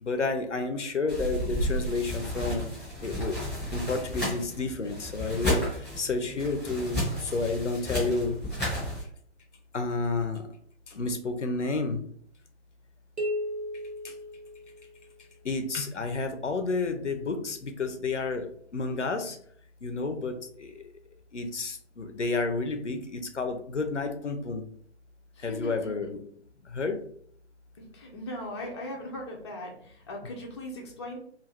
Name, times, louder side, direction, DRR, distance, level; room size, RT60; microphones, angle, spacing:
voice 1, 0.0-2.7 3.0-3.4 3.7-8.4 9.7-10.4 10.9-12.0 14.0-14.1 15.4-19.4 19.8-20.8 21.3-24.6 25.4-26.2 26.6-27.0, left 3 dB, 90° left, 7 dB, 0.6 m, -30 dB
sound 1, 1.1-9.0, equal, ahead, 1.0 m, -32 dB
sound 2, 13.2-15.1, equal, 70° right, 0.9 m, -34 dB
voice 2, 25.4-25.9 27.8-31.2, left 1 dB, 25° left, -1 dB, 0.4 m, -39 dB
2.4 x 2.4 x 3.2 m, 0.63 s
figure-of-eight pair, 135°, 34 cm